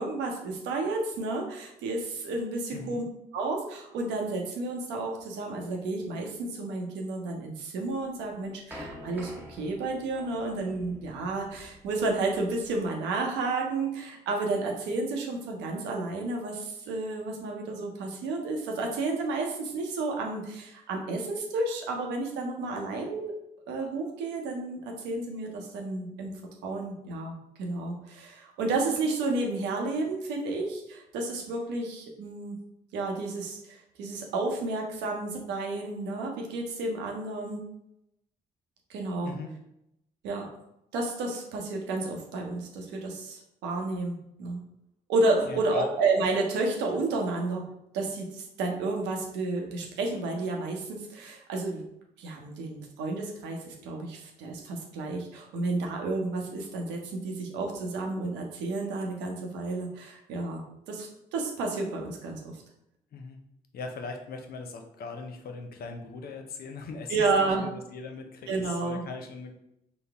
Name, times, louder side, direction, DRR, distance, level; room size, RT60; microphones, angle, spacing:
voice 1, 0.0-3.0 3.3-23.3 23.7-26.3 26.6-32.6 32.9-37.6 38.9-39.3 40.2-40.5 40.9-44.6 45.1-47.6 47.9-51.8 52.2-60.6 60.9-62.5 67.1-67.7 68.5-69.0, right 3 dB, 80° right, 1 dB, 0.7 m, -31 dB
voice 2, 2.7-3.0 39.2-39.5 45.4-45.9 63.1-63.4 63.7-67.1 67.4-69.5, left 4 dB, 60° left, 5 dB, 0.6 m, -39 dB
sound 1, 7.9-12.9, equal, 10° right, 1.1 m, -47 dB
4.0 x 2.0 x 3.4 m, 0.82 s
hypercardioid pair, 50°, 18 cm